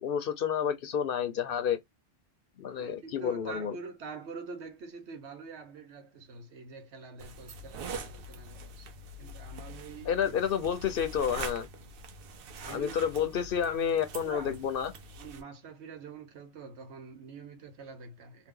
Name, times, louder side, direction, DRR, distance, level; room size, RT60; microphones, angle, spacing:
voice 1, 0.0-1.8 2.6-3.8 10.1-11.7 12.7-14.9, left 8 dB, 60° left, 0.7 m, -30 dB
voice 2, 2.8-8.9 9.2-10.4 12.6-13.0 14.2-14.6 15.2-18.5, right 4 dB, 85° right, 1.1 m, -45 dB
sound 1, 7.2-15.4, right 2 dB, 60° right, 0.7 m, -44 dB
2.8 x 2.2 x 3.6 m
omnidirectional pair, 1.1 m